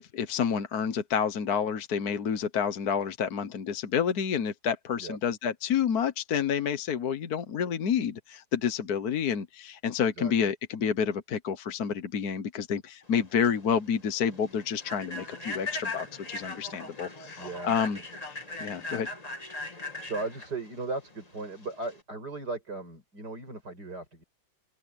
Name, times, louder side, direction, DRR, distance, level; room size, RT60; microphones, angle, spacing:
voice 1, 0.0-18.0 18.3-19.1, left 7 dB, 55° left, 1.5 m, -29 dB
voice 2, 10.2-10.5 17.4-17.8 20.0-24.2, right 3 dB, 50° right, 7.3 m, -37 dB
Human voice / Train, 13.1-22.0, left 2 dB, 20° left, 2.0 m, -39 dB
open air
omnidirectional pair, 2.2 m